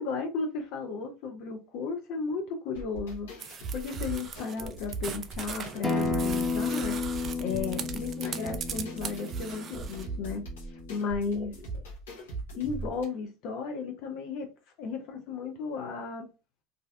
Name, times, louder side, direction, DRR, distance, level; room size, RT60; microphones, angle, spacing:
voice 1, 0.0-7.0 7.4-10.4 10.9-11.8 12.6-14.5 14.8-16.3, left 4 dB, 60° left, 0.5 m, -34 dB
sound 1, 2.7-13.0, right 3 dB, 90° left, 1.0 m, -40 dB
sound 2, 3.4-10.0, right 7 dB, 40° right, 0.3 m, -40 dB
Acoustic guitar, 5.8-11.0, left 3 dB, 15° left, 0.6 m, -33 dB
2.5 x 2.1 x 2.3 m
hypercardioid pair, 95°, 0 cm